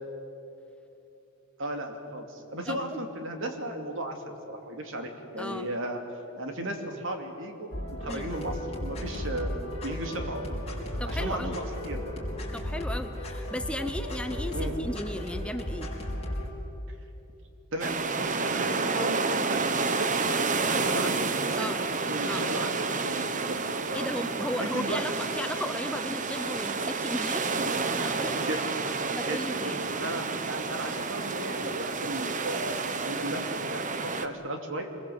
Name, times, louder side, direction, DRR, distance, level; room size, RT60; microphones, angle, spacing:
voice 1, 1.6-6.0 6.3-9.5 9.8-10.7 11.1-12.0 14.5-14.8 17.7-20.4 20.8-23.6 23.9-24.1 24.6-25.2 28.3-28.8 29.0-32.8 33.0-34.9, right 1 dB, 60° right, 4 dB, 2.9 m, -35 dB
voice 2, 2.7-3.0 5.4-5.7 8.1-8.3 11.0-11.5 12.5-15.9 21.6-21.8 22.3-22.5 23.9-27.5 28.0-28.4 29.2-29.8, left 1 dB, 5° left, 8 dB, 0.8 m, -35 dB
sound 1, 7.7-16.5, equal, 30° left, 4.9 m, -34 dB
sound 2, 17.8-34.3, right 4 dB, 35° right, 1.0 m, -30 dB
25.5 x 21.0 x 8.0 m, 2.9 s
head